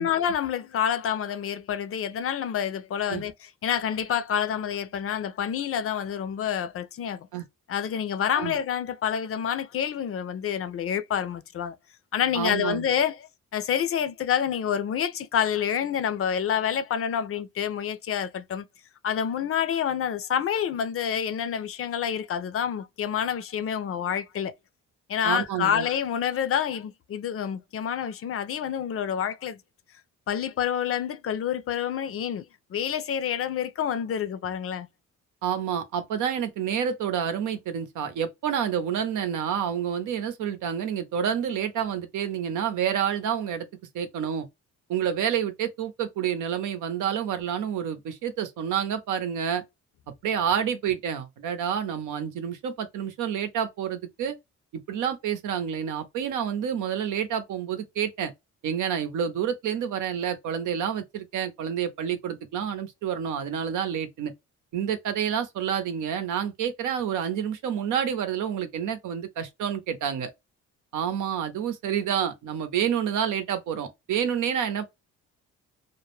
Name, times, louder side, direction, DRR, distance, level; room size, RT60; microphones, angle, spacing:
voice 1, 0.0-7.3 7.7-11.8 12.1-13.2 13.5-18.6 19.0-24.5 25.1-29.6 30.3-32.4 32.7-34.9, left 8 dB, 50° left, 0.5 m, -28 dB
voice 2, 12.3-12.9 25.2-25.9 35.4-43.7 43.9-44.5 44.9-49.6 50.2-54.4 54.9-58.3 58.6-64.3 64.7-70.3 70.9-74.9, right 8 dB, 80° right, 0.7 m, -28 dB
2.2 x 2.1 x 3.1 m
cardioid pair, 90°, 30 cm